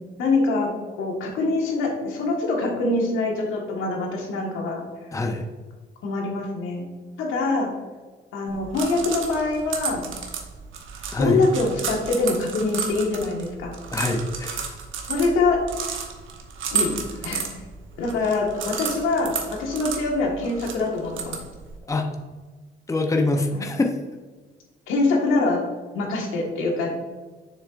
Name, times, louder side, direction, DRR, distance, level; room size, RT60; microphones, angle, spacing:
voice 1, 0.2-0.7 1.0-4.8 6.0-6.9 7.2-7.7 8.3-10.0 11.2-13.7 15.1-15.6 16.7-16.9 17.2-17.5 18.0-21.4 23.5-23.7 24.9-25.6 25.9-26.9, left 3 dB, 90° left, -1 dB, 1.5 m, -24 dB
voice 2, 5.1-5.5 11.1-11.4 13.9-14.8 21.9-22.1 22.9-23.9, left 2 dB, 15° left, 4 dB, 0.7 m, -24 dB
sound 1, 8.5-21.8, right 6 dB, 75° right, 1.0 m, -33 dB
7.1 x 6.5 x 2.5 m, 1.3 s
cardioid pair, 90°, 20 cm